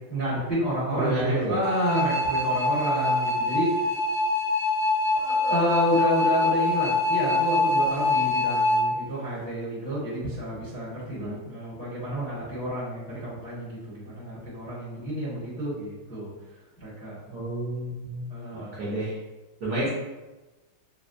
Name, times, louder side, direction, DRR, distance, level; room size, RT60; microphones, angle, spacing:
voice 1, 0.1-3.9 5.1-16.3 16.8-17.2 18.3-18.7, equal, 10° left, -11 dB, 1.0 m, -29 dB
voice 2, 0.9-1.6 11.1-11.4 17.3-18.3 18.7-19.2 19.6-19.9, right 1 dB, 60° right, -8 dB, 1.2 m, -29 dB
sound 1, 1.6-8.8, left 2 dB, 75° left, 2.1 m, -24 dB
4.1 x 2.1 x 2.6 m, 1.1 s
omnidirectional pair, 2.3 m